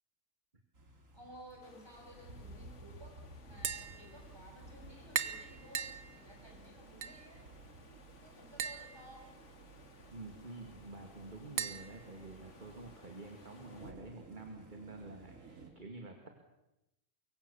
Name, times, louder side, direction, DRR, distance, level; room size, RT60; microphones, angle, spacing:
sound 1, 0.7-15.7, right 2 dB, 70° right, 3.4 m, -57 dB
voice 1, 1.1-3.2 3.4-7.5 8.2-9.4, equal, 20° right, 0 dB, 6.7 m, -56 dB
sound 2, 1.6-13.9, left 4 dB, 60° left, 2.0 m, -60 dB
Tap, 3.5-13.0, right 8 dB, 90° right, 1.5 m, -44 dB
voice 2, 10.1-16.3, right 2 dB, 35° right, 3 dB, 2.4 m, -49 dB
24.5 x 23.0 x 7.1 m, 0.91 s
omnidirectional pair, 1.4 m